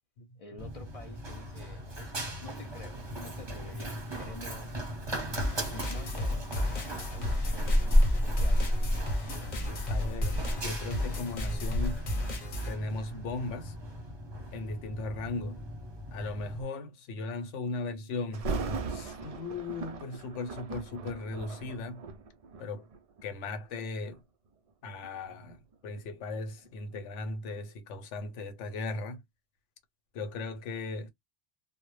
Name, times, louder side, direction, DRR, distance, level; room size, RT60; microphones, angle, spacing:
voice 1, 0.4-4.8 5.7-7.5 8.4-8.8, left 4 dB, 70° left, 0.3 m, -50 dB
Run, 0.6-16.6, equal, 30° right, 0.6 m, -33 dB
sound 1, 5.4-12.8, left 1 dB, 45° left, 0.7 m, -34 dB
voice 2, 9.9-12.0 12.7-13.8 14.5-15.6 16.1-18.5 18.9-22.0 22.6-22.9 23.2-24.2 24.8-29.2 30.1-31.1, left 3 dB, 85° left, 0.9 m, -37 dB
Thunder, 18.3-23.3 24.0-24.2 24.8-27.6 28.0-28.1, right 4 dB, 65° right, 0.3 m, -39 dB
2.1 x 2.0 x 3.0 m
omnidirectional pair, 1.2 m